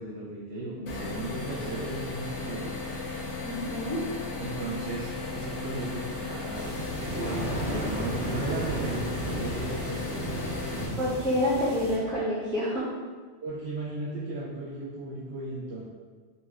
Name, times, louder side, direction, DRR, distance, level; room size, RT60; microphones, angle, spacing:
voice 1, 0.0-2.7 4.4-6.7 6.9-10.3 11.5-11.6 13.4-15.8, right 2 dB, 75° right, -7 dB, 0.8 m, -36 dB
sound 1, 0.9-10.9, left 3 dB, 90° left, 0.9 m, -35 dB
voice 2, 3.4-4.0 11.0-13.0, left 1 dB, 5° left, -14 dB, 1.3 m, -28 dB
sound 2, 6.5-12.0, right 1 dB, 50° left, 1.4 m, -34 dB
3.0 x 2.7 x 2.4 m, 1.5 s
omnidirectional pair, 1.2 m